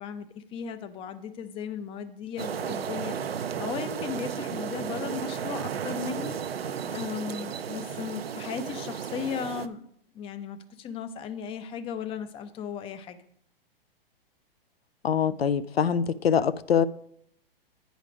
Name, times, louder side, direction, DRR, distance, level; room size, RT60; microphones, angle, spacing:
voice 1, 0.0-9.9 10.1-13.2, left 7 dB, 20° left, 0.4 m, -36 dB
sound 1, 2.4-9.7, right 7 dB, 85° right, 0.5 m, -34 dB
voice 2, 15.0-16.9, left 7 dB, 90° left, 0.5 m, -24 dB
8.9 x 5.1 x 5.0 m
hypercardioid pair, 115°, 30 cm